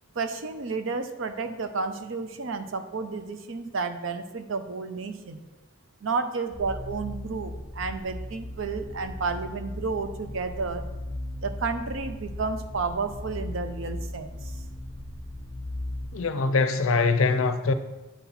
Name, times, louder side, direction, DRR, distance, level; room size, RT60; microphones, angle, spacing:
voice 1, 0.2-5.5 6.0-10.8 11.4-14.5, right 4 dB, 70° right, 0.6 m, -31 dB
sound 1, 6.5-16.1, left 1 dB, 20° right, 1.3 m, -37 dB
voice 2, 16.1-17.7, left 4 dB, 80° left, 0.6 m, -23 dB
9.0 x 4.2 x 4.2 m
head